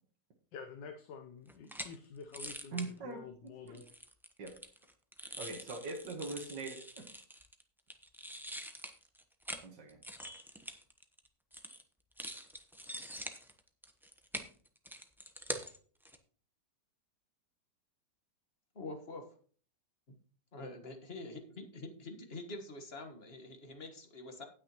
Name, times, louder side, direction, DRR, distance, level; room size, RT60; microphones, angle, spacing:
voice 1, 0.5-3.9, left 6 dB, 85° left, 5 dB, 1.5 m, -49 dB
sound 1, 1.5-2.0 2.3-2.9 3.7-7.6 7.9-9.6 9.9-11.3 11.5-11.8 12.1-15.8 16.0-16.2, equal, ahead, 0.6 m, -45 dB
voice 2, 2.7-3.2 3.7-3.8 4.4-4.5 5.2-7.1 9.6-10.0, right 3 dB, 80° right, 0 dB, 2.0 m, -42 dB
voice 3, 18.8-19.3 20.5-24.5, left 2 dB, 35° left, 5 dB, 1.6 m, -46 dB
18.0 x 6.3 x 3.0 m, 0.43 s
omnidirectional pair, 1.9 m